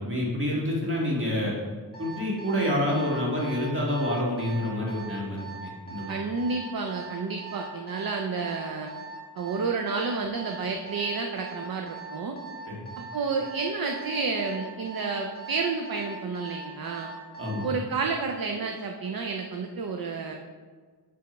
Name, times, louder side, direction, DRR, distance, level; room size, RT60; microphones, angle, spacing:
voice 1, 0.0-1.5 2.0-6.2 12.7-12.9 17.4-17.7, left 1 dB, 30° right, -4 dB, 1.9 m, -28 dB
Alarm, 1.9-17.7, right 4 dB, 20° left, 1.6 m, -41 dB
voice 2, 6.1-8.9 9.4-12.4 13.1-17.1 17.6-20.3, right 4 dB, 55° right, 3 dB, 0.6 m, -30 dB
7.6 x 3.5 x 5.2 m, 1.5 s
wide cardioid pair, 105°, 43 cm